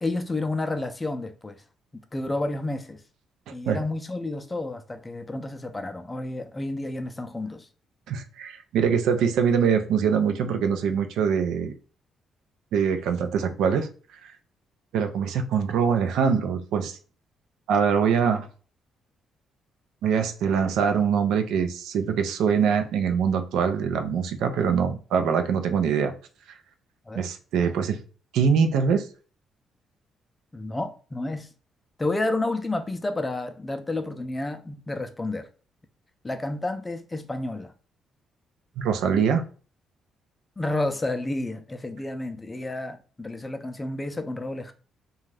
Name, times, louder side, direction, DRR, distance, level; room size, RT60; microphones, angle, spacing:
voice 1, 0.0-1.6 2.1-3.0 3.5-7.7 27.1-27.3 30.5-31.5 32.0-35.5 36.2-37.7 40.6-44.7, left 2 dB, 20° left, 0.4 m, -30 dB
voice 2, 8.1-11.7 12.7-13.9 14.2-14.3 14.9-17.0 17.7-18.5 20.0-26.1 27.2-28.0 28.3-29.1 38.8-39.4, right 6 dB, 85° right, 0.4 m, -23 dB
2.5 x 2.3 x 3.2 m
cardioid pair, 90°, 0 cm